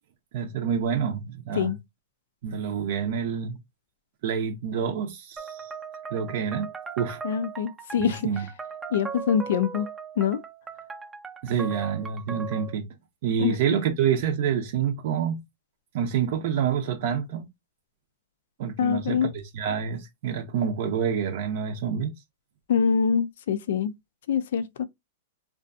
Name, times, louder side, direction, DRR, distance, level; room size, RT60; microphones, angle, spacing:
voice 1, 0.3-1.7 2.4-3.6 4.2-5.7 6.1-7.2 8.0-8.4 11.4-12.9 13.2-15.4 15.9-17.5 18.6-22.1, right 7 dB, 60° right, 0.5 m, -27 dB
sound 1, 5.4-12.8, right 5 dB, 15° right, 0.5 m, -38 dB
voice 2, 7.2-8.2 8.9-9.9 10.2-10.4 13.4-13.6 18.8-19.3 22.7-23.9 24.3-24.8, left 7 dB, 70° left, 0.3 m, -24 dB
2.5 x 2.2 x 2.5 m
hypercardioid pair, 130°, 0 cm